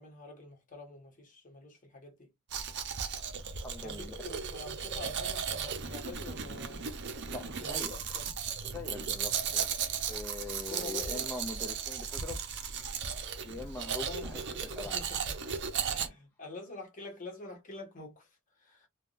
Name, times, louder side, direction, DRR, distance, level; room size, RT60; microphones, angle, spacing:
voice 1, 0.0-2.3 3.8-6.9 7.4-8.3 10.7-11.3 14.0-15.4 15.9-18.3 18.6-18.9, left 3 dB, 35° left, 1.1 m, -47 dB
Domestic sounds home sounds, 2.5-16.1, right 7 dB, 55° right, 0.6 m, -36 dB
voice 2, 3.6-4.4 7.3-8.0 8.6-9.7 10.1-12.4 13.4-15.0, left 2 dB, 10° left, 0.3 m, -42 dB
3.4 x 2.3 x 2.5 m
head